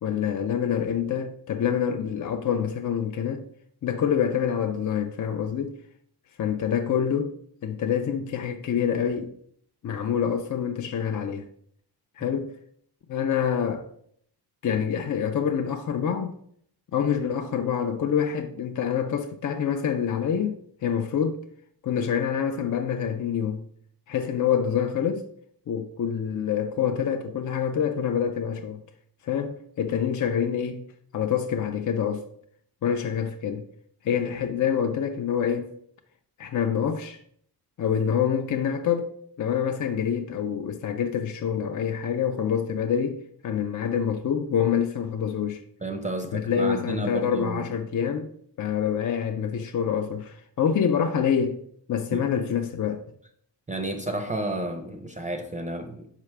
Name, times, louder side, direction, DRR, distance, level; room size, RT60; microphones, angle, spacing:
voice 1, 0.0-3.4 3.8-5.8 6.4-7.4 7.6-9.3 9.8-11.4 12.2-12.5 13.1-13.9 14.6-16.4 16.9-21.4 21.8-23.6 24.1-25.3 25.7-28.8 29.2-30.8 31.1-32.3 32.8-33.6 34.0-35.7 36.4-37.2 37.8-45.6 46.3-48.3 48.6-51.6 51.9-53.1, left 8 dB, 50° left, 0.4 m, -26 dB
voice 2, 45.8-47.7 52.1-52.3 53.7-56.1, right 2 dB, 20° right, 0.5 m, -32 dB
5.8 x 4.9 x 3.3 m
wide cardioid pair, 135°, 40 cm